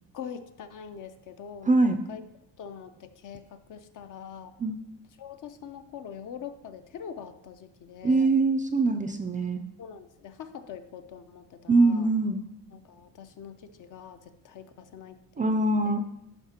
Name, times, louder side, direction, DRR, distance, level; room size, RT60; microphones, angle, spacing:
voice 1, 0.1-2.2 2.6-4.6 5.2-8.3 9.8-12.1 12.7-15.6 15.8-15.9, left 7 dB, 55° left, 9 dB, 0.7 m, -43 dB
voice 2, 1.7-2.0 4.6-4.7 8.0-9.6 11.7-12.4 15.4-16.0, right 2 dB, 20° right, 7 dB, 0.4 m, -23 dB
11.5 x 5.1 x 2.9 m, 0.86 s
cardioid pair, 110°, 38 cm